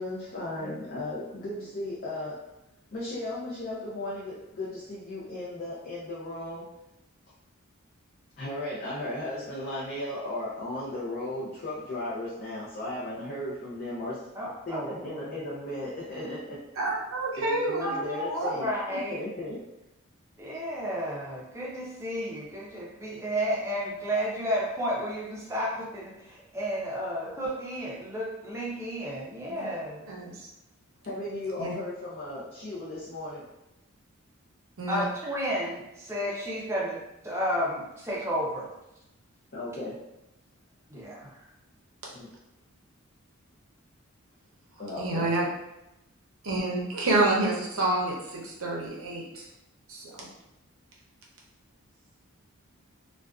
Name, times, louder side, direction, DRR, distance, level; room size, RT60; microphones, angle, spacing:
voice 1, 0.0-2.3 2.9-6.7 8.4-14.2 14.7-16.6 17.4-19.6 31.0-33.4 39.5-40.0 42.1-42.3 44.8-45.3, left 1 dB, 40° left, -7 dB, 0.5 m, -35 dB
voice 2, 14.4-15.2 17.8-18.3 18.6-19.2 20.4-30.1 34.9-38.7 40.9-41.3, equal, 10° right, -5 dB, 0.5 m, -32 dB
voice 3, 16.8-18.0 18.3-18.5 29.5-29.7 30.1-30.5 31.6-31.7 34.8-35.0 45.0-45.5 46.4-49.5 49.9-50.3, right 2 dB, 70° right, -3 dB, 0.6 m, -28 dB
2.4 x 2.2 x 2.3 m, 0.90 s
head